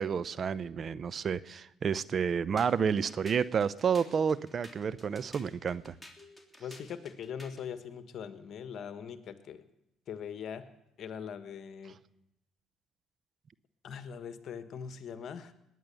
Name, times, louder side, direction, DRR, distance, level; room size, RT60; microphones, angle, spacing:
voice 1, 0.0-5.9, right 6 dB, 50° right, 17 dB, 0.6 m, -30 dB
sound 1, 2.6-7.7, left 1 dB, ahead, 3.2 m, -53 dB
voice 2, 6.6-9.6 10.1-10.6 11.0-12.0 13.8-15.5, left 7 dB, 60° left, 11 dB, 1.3 m, -41 dB
20.5 x 9.3 x 6.9 m, 0.86 s
supercardioid pair, 60°, 0 cm